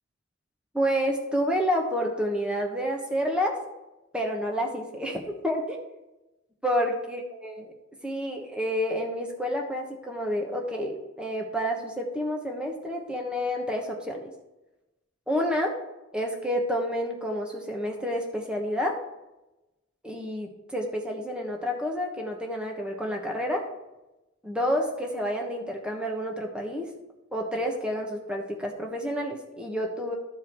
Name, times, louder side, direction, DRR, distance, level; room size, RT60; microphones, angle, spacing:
voice 1, 0.7-3.5 4.1-5.8 6.6-7.7 8.0-14.3 15.3-15.8 16.1-19.0 20.0-23.7 24.4-26.9 27.3-30.2, equal, 5° right, 1 dB, 1.1 m, -29 dB
13.5 x 4.8 x 4.5 m, 1.0 s
head